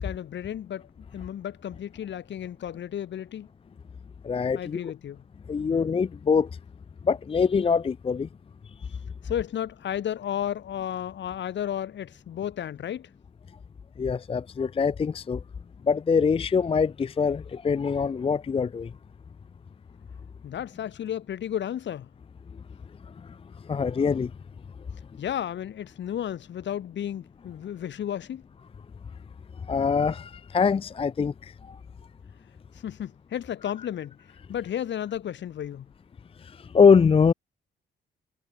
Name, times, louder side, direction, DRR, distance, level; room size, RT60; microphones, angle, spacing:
voice 1, 0.0-3.5 4.5-5.2 5.7-5.9 9.2-13.1 20.4-22.1 25.2-28.4 32.8-34.2 34.5-35.9, left 10 dB, 65° left, 4.5 m, -33 dB
voice 2, 4.2-4.9 5.5-6.5 7.0-8.3 8.8-8.9 14.0-15.4 15.8-18.9 23.1-23.4 23.6-24.3 29.7-31.8 36.4-37.3, left 5 dB, 30° left, 0.5 m, -24 dB
cardioid pair, 90°, 20 cm